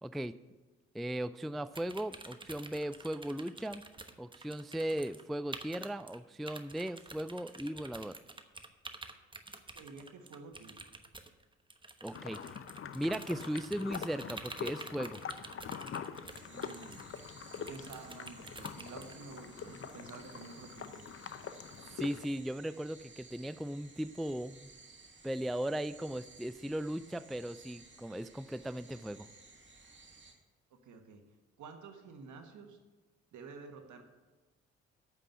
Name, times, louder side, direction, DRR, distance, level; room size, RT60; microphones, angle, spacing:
voice 1, 0.0-0.3 0.9-3.8 4.2-8.2 12.0-12.6 12.9-15.2 21.9-24.7 25.2-29.3, right 1 dB, ahead, 14 dB, 0.3 m, -37 dB
sound 1, 1.7-5.2 5.5-6.2 6.5-19.1, right 2 dB, 15° right, 1.0 m, -49 dB
voice 2, 9.7-10.9 16.4-17.1 17.5-21.1 30.8-31.2 31.6-32.8 33.3-34.0, right 4 dB, 65° right, 5 dB, 1.5 m, -50 dB
sound 2, 12.1-22.3, left 7 dB, 40° left, 0.7 m, -44 dB
sound 3, 16.3-30.3, right 3 dB, 35° right, 2.2 m, -57 dB
8.9 x 6.3 x 8.0 m, 1.3 s
hypercardioid pair, 40°, 32 cm